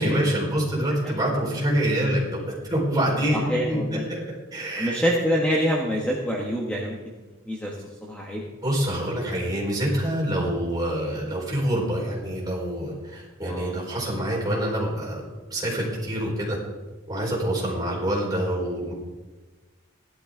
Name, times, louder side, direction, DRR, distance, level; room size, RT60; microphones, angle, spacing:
voice 1, 0.0-3.8 4.1-4.2 4.5-5.0 8.6-16.6 17.1-18.9, right 1 dB, 20° right, -4 dB, 4.7 m, -26 dB
voice 2, 3.3-4.1 4.8-7.0 7.5-8.5 13.5-13.7, equal, 5° left, -3 dB, 1.4 m, -26 dB
16.5 x 12.0 x 3.8 m, 1.3 s
head